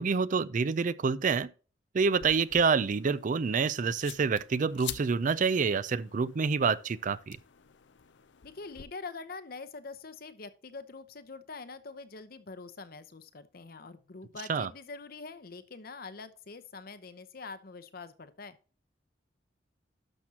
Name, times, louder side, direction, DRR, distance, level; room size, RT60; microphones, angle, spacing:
voice 1, 0.0-1.5 1.9-7.4 14.5-14.7, right 5 dB, 45° right, 0.4 m, -27 dB
sound 1, 2.0-8.8, left 11 dB, 85° left, 0.5 m, -47 dB
voice 2, 8.4-18.6, left 4 dB, 55° left, 0.8 m, -44 dB
11.5 x 6.1 x 2.9 m
head